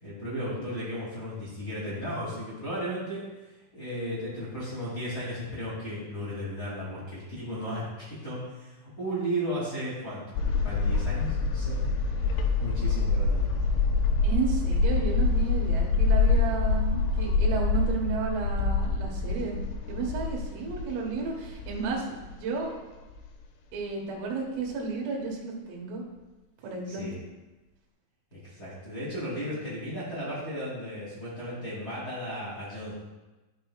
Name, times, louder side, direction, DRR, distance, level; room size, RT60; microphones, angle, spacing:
voice 1, 0.0-3.2 3.7-11.8 12.2-13.5 26.9-27.2 28.3-32.9, equal, 30° left, -9 dB, 2.0 m, -35 dB
sound 1, 10.4-22.3 22.7-22.8 23.1-23.2, left 4 dB, 80° left, 3.2 m, -26 dB
voice 2, 14.2-19.6 19.9-22.7 23.7-26.0 26.6-27.0, right 4 dB, 80° right, -2 dB, 4.1 m, -32 dB
11.5 x 7.9 x 2.4 m, 1.1 s
omnidirectional pair, 5.9 m